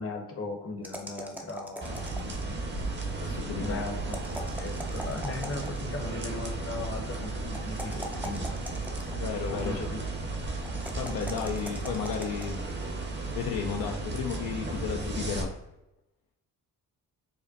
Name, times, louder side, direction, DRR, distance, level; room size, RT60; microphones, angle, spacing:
voice 1, 0.0-2.6 3.2-4.2 4.6-8.5 9.5-10.0, left 2 dB, 35° left, 3 dB, 0.9 m, -38 dB
sound 1, 0.8-2.6 4.0-5.9 7.5-9.4 10.7-12.6, right 1 dB, 5° right, 0.5 m, -41 dB
sound 2, 1.8-15.4, right 2 dB, 25° right, 0.8 m, -35 dB
sound 3, 2.0-13.7, right 4 dB, 65° right, 0.8 m, -42 dB
voice 2, 3.2-3.8 9.1-9.8 11.0-12.6 13.3-15.6, left 7 dB, 60° left, 1 dB, 0.5 m, -33 dB
5.1 x 2.1 x 2.6 m, 0.93 s
supercardioid pair, 55°, 42 cm